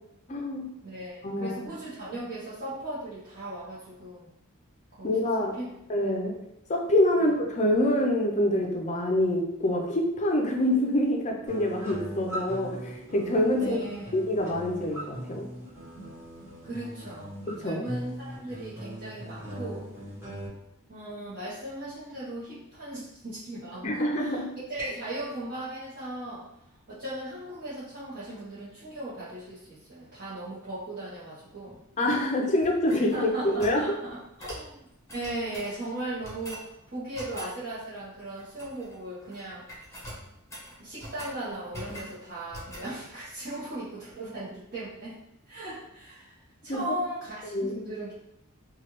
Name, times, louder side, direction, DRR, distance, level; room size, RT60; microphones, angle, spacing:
voice 1, 0.3-0.7 1.2-1.6 5.0-5.6 5.9-6.4 6.7-13.8 14.1-15.5 17.5-17.8 23.8-24.5 32.0-33.8 34.4-34.5 46.7-47.0 47.5-47.8, left 1 dB, 35° left, 1 dB, 0.5 m, -26 dB
voice 2, 0.8-4.3 5.0-5.7 7.2-7.3 13.6-14.1 16.6-19.9 20.9-26.5 26.9-31.8 33.1-34.8 35.1-39.6 40.8-45.2 45.5-46.4 46.6-48.1, right 1 dB, 45° right, -12 dB, 0.9 m, -37 dB
sound 1, 11.5-20.5, equal, 10° right, 1.4 m, -40 dB
sound 2, 32.6-33.8 34.4-34.7 35.1-35.8 36.2-36.7 37.1-37.5 38.4-38.9 39.2-39.4 39.7-41.4 41.7-42.2 42.5-42.9, equal, 15° left, 0.8 m, -43 dB
3.1 x 2.3 x 3.0 m, 0.82 s
head